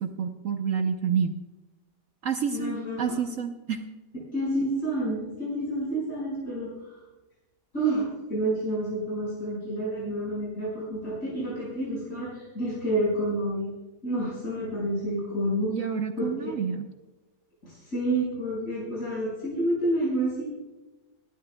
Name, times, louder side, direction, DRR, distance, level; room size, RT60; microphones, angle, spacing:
voice 1, 0.0-1.4 2.2-3.8 15.7-16.8, right 7 dB, 60° right, 5 dB, 1.0 m, -29 dB
voice 2, 2.5-3.2 4.3-7.0 7.7-13.7 14.0-15.7 16.2-16.5 17.6-20.4, right 1 dB, 50° left, -8 dB, 5.7 m, -29 dB
29.0 x 11.5 x 2.2 m, 1.1 s
omnidirectional pair, 1.8 m